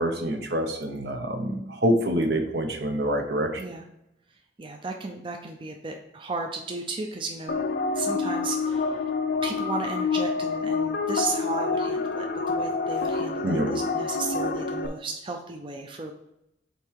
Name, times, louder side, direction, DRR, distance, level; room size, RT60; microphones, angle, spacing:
voice 1, 0.0-3.6 13.4-13.7, right 1 dB, 65° right, 5 dB, 0.9 m, -26 dB
voice 2, 4.6-7.6 7.9-9.0 9.4-16.1, right 3 dB, 30° right, 3 dB, 0.5 m, -34 dB
sound 1, 7.5-14.9, left 4 dB, 60° left, 0.5 m, -27 dB
5.4 x 4.3 x 4.6 m, 0.84 s
head